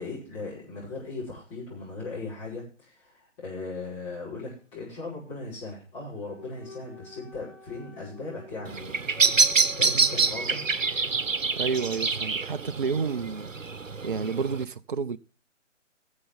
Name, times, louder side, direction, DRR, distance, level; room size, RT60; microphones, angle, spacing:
voice 1, 0.0-10.6, left 3 dB, 25° left, 5.8 m, -38 dB
sound 1, 6.3-10.2, left 4 dB, 75° left, 2.9 m, -47 dB
Bird vocalization bird call bird song, 8.6-14.6, right 4 dB, 80° right, 1.0 m, -26 dB
voice 2, 11.6-13.5 14.0-15.2, right 5 dB, 45° right, 0.6 m, -30 dB
21.5 x 7.3 x 3.5 m
figure-of-eight pair, 145°, 38 cm